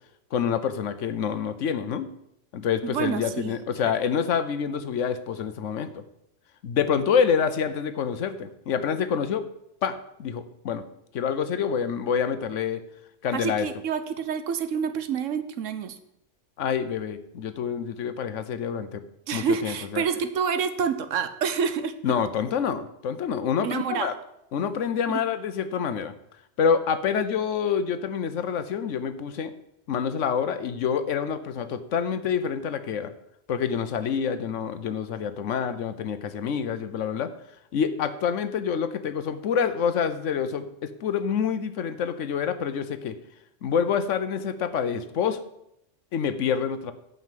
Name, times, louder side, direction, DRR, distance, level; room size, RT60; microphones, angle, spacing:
voice 1, 0.3-2.1 2.5-6.0 6.6-9.4 9.8-10.8 11.1-12.8 13.2-13.7 16.6-19.0 19.3-20.0 22.0-24.1 24.5-26.1 26.6-29.5 29.9-33.1 33.5-37.3 37.7-43.2 43.6-45.4 46.1-46.9, left 7 dB, 80° left, 11 dB, 1.1 m, -27 dB
voice 2, 2.8-3.6 3.8-3.9 13.3-16.0 19.3-21.9 23.6-24.2 25.1-25.2, right 6 dB, 85° right, 10 dB, 1.2 m, -28 dB
9.3 x 5.4 x 7.5 m, 0.80 s
omnidirectional pair, 1.3 m